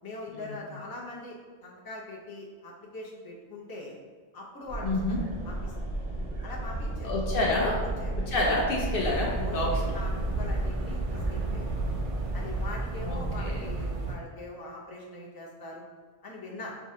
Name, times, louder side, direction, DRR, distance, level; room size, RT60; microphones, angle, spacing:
voice 1, 0.0-4.0 4.3-5.2 5.4-5.7 6.4-7.1 8.0-8.1 9.2-10.1 10.4-11.8 12.3-15.8 16.2-16.8, left 2 dB, 25° left, -4 dB, 0.7 m, -42 dB
sound 1, 4.7-14.2, right 2 dB, 65° right, 1.3 m, -34 dB
voice 2, 4.8-5.2 7.0-7.8 8.3-9.8 13.0-13.7, left 2 dB, 65° left, -2 dB, 0.8 m, -28 dB
sound 2, 8.9-14.2, right 2 dB, 50° right, 0.4 m, -33 dB
4.8 x 3.5 x 2.8 m, 1.5 s
omnidirectional pair, 1.0 m